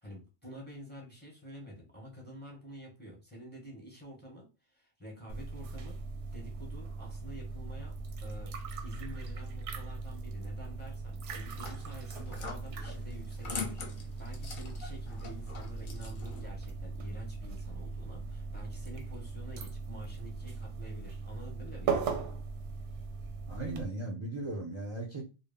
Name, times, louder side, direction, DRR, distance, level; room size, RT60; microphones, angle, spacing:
voice 1, 0.0-6.0 6.3-7.9 8.2-8.5 8.8-22.4, equal, 10° left, -1 dB, 0.7 m, -48 dB
sound 1, 5.3-23.9, right 4 dB, 90° right, 0.9 m, -39 dB
sound 2, 11.3-16.5, left 5 dB, 55° left, 0.7 m, -44 dB
voice 2, 23.5-25.2, right 2 dB, 45° right, -1 dB, 0.3 m, -37 dB
2.1 x 2.0 x 3.4 m, 0.31 s
omnidirectional pair, 1.2 m